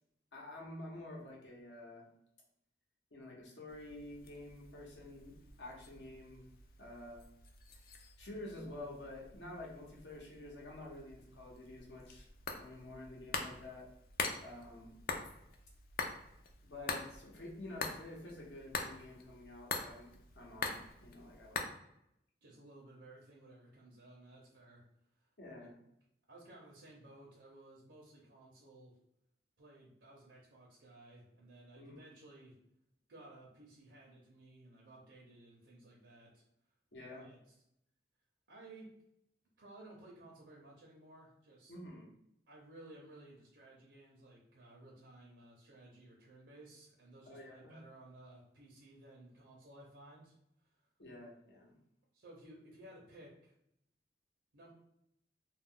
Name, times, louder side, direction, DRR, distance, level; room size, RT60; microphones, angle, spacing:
voice 1, 0.3-2.0 3.1-6.5 6.8-7.2 8.2-12.3 12.6-13.9 14.4-14.9 16.6-21.7 25.4-25.7 31.8-32.0 36.9-37.2 41.7-42.1 47.3-47.8 51.0-51.7, left 1 dB, 80° left, -2 dB, 0.9 m, -49 dB
sound 1, 3.7-21.6, left 4 dB, 55° left, 0.3 m, -45 dB
voice 2, 22.4-24.8 25.2-25.3 26.3-29.0 29.6-32.5 33.1-36.4 37.1-37.4 38.5-38.9 39.6-41.7 42.5-50.3 50.6-50.9 52.1-53.5 54.5-54.7, right 1 dB, 80° right, -3 dB, 0.6 m, -57 dB
2.4 x 2.1 x 3.6 m, 0.77 s
head